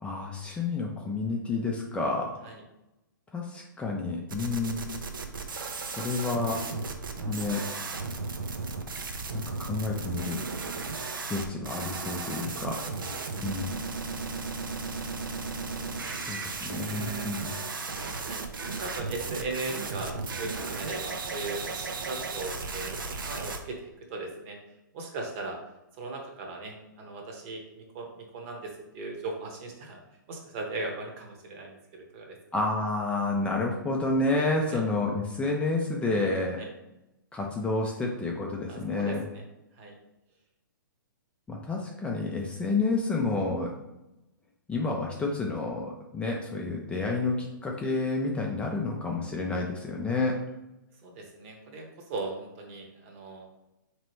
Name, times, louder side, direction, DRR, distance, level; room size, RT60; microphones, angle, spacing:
voice 1, 0.0-2.3 3.3-4.9 6.0-6.6 7.3-7.6 9.3-10.4 11.3-12.8 13.4-13.8 16.3-17.5 32.5-36.6 37.3-39.2 41.5-43.7 44.7-50.4, left 3 dB, 10° left, -1 dB, 0.4 m, -29 dB
sound 1, 4.3-23.6, right 4 dB, 80° right, 0.6 m, -35 dB
voice 2, 15.7-16.2 16.5-17.3 17.7-18.4 18.7-24.6 24.9-25.6 26.0-30.0 30.3-32.4 34.7-34.8 36.6-36.7 38.7-39.4 39.7-39.9 51.0-53.5, right 3 dB, 40° right, 2 dB, 0.9 m, -38 dB
4.1 x 3.0 x 3.1 m, 0.94 s
hypercardioid pair, 125°, 11 cm